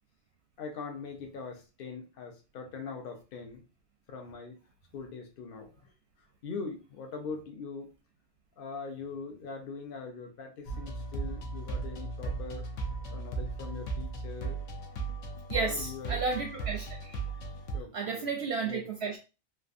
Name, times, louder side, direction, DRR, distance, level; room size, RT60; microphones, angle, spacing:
voice 1, 0.6-3.6 4.1-4.6 4.9-5.7 6.4-7.9 8.6-12.6 13.1-14.6 15.5-16.2 17.7-18.3 18.6-18.9, left 4 dB, 50° left, 0.8 m, -41 dB
sound 1, 10.7-17.8, right 3 dB, 70° left, 1.0 m, -36 dB
voice 2, 15.5-17.2 17.9-19.2, right 4 dB, 65° right, 0.7 m, -32 dB
3.3 x 2.5 x 2.5 m
omnidirectional pair, 1.4 m